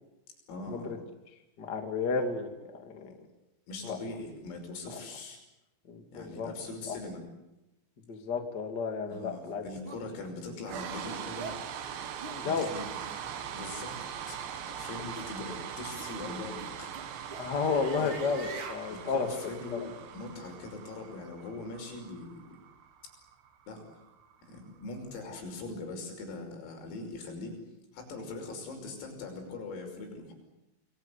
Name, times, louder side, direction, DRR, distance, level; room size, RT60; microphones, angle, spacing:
voice 1, 0.5-0.9 3.7-5.4 6.1-7.3 9.1-11.6 12.4-12.9 13.5-14.0 14.3-17.3 17.9-18.2 18.9-22.6 23.7-23.8 24.4-27.6 27.9-30.3, left 3 dB, 85° left, 3 dB, 8.3 m, -41 dB
voice 2, 1.6-2.5 2.8-3.1 3.8-4.0 5.9-6.5 6.9-7.0 8.1-9.6 12.3-12.7 17.4-19.3 19.7-19.9, left 5 dB, 35° left, 5 dB, 1.8 m, -32 dB
sound 1, 9.1-9.2 9.9-10.0 10.7-10.9 11.4-11.6 12.2-12.4 13.0-13.2 14.1-14.4 15.1-15.3 16.0-16.1 16.6-18.8, right 3 dB, 40° right, 2.0 m, -43 dB
sound 2, 10.6-24.8, right 8 dB, 65° right, 3.8 m, -42 dB
29.0 x 21.5 x 8.4 m, 0.97 s
omnidirectional pair, 5.9 m